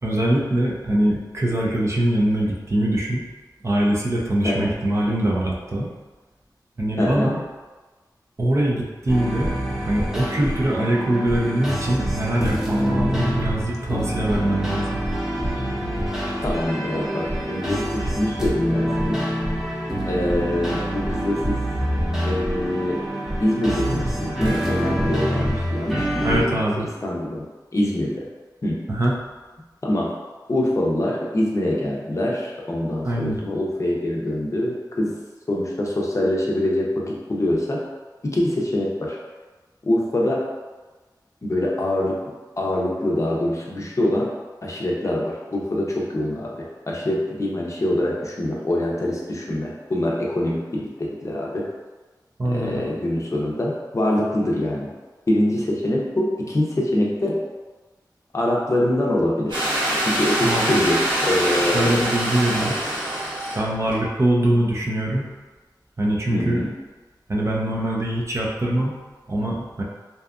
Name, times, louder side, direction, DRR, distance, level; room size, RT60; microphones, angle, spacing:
voice 1, 0.0-3.3 3.6-5.9 6.8-7.4 8.4-9.5 9.9-15.0 26.2-26.9 28.9-29.2 33.0-33.4 52.4-52.8 60.4-60.8 61.7-62.8 63.6-65.3 66.0-66.6 67.3-69.0 69.3-69.8, right 1 dB, 40° right, -3 dB, 0.5 m, -23 dB
voice 2, 7.0-7.3 16.4-19.2 20.1-21.6 22.2-23.0 23.4-26.6 27.0-27.4 27.7-28.2 28.6-28.8 29.8-30.1 30.5-35.1 35.5-37.8 38.2-39.2 39.8-40.4 41.4-42.2 42.6-44.3 44.6-51.6 52.5-54.9 55.3-57.4 58.3-59.7 60.1-61.9 66.3-66.7, left 1 dB, 45° left, -3 dB, 0.5 m, -24 dB
sound 1, 9.1-26.4, equal, 5° right, 0.8 m, -26 dB
sound 2, 59.5-63.6 63.9-64.0, right 1 dB, 90° right, 0.9 m, -24 dB
2.7 x 2.3 x 2.3 m, 1.3 s
wide cardioid pair, 70°, 8 cm